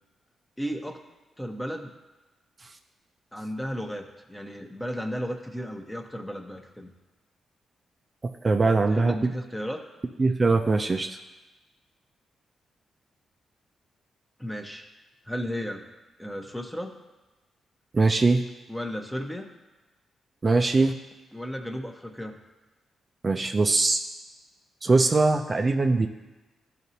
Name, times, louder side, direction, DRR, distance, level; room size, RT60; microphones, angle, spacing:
voice 1, 0.6-1.0 1.4-1.9 3.3-6.9 8.9-9.8 14.4-14.9 15.3-15.9 16.2-17.0 18.7-19.5 21.3-22.4, equal, 10° left, 4 dB, 0.9 m, -34 dB
voice 2, 8.4-9.1 10.2-11.1 17.9-18.4 20.4-20.9 23.2-24.0 24.8-26.1, right 3 dB, 35° right, 4 dB, 0.4 m, -21 dB
12.0 x 4.1 x 2.8 m, 1.1 s
supercardioid pair, 60°, 0 cm